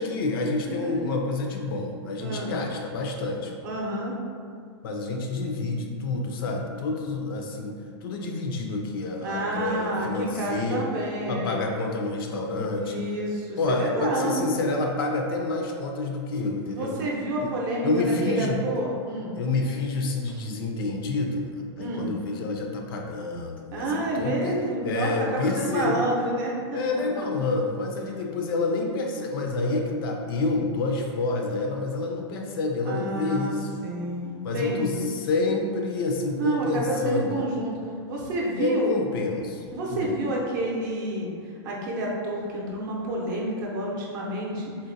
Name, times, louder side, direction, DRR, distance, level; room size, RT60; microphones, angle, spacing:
voice 1, 0.0-3.5 4.8-10.9 11.3-13.0 13.6-17.0 17.4-17.5 17.8-18.6 19.4-21.5 21.8-26.0 26.7-33.7 34.4-37.4 38.6-40.2, left 3 dB, 50° left, 2 dB, 0.4 m, -28 dB
voice 2, 0.6-1.2 2.2-2.6 3.6-4.1 9.2-11.6 12.7-14.5 16.7-19.3 20.3-20.4 21.8-22.1 23.7-26.8 32.9-33.6 33.8-35.1 36.4-37.7 38.1-38.9 39.7-41.3 41.6-44.7, right 1 dB, 45° right, -3 dB, 0.6 m, -29 dB
3.8 x 2.1 x 2.6 m, 2.2 s
supercardioid pair, 160°, 15 cm